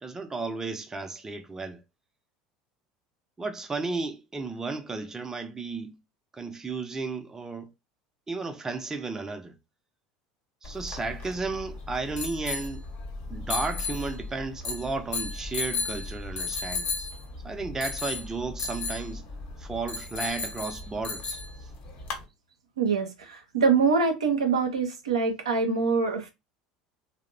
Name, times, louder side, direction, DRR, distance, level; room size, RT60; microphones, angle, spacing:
voice 1, 0.0-1.8 3.4-6.0 6.3-7.7 8.3-9.6 10.6-12.8 13.3-17.1 17.4-19.3 19.6-21.4, right 3 dB, 15° right, 0.5 m, -33 dB
sound 1, 10.6-22.2, left 4 dB, 50° left, 1.0 m, -35 dB
voice 2, 22.8-26.3, right 5 dB, 85° right, 0.5 m, -24 dB
2.7 x 2.0 x 2.4 m
hypercardioid pair, 75°, 3 cm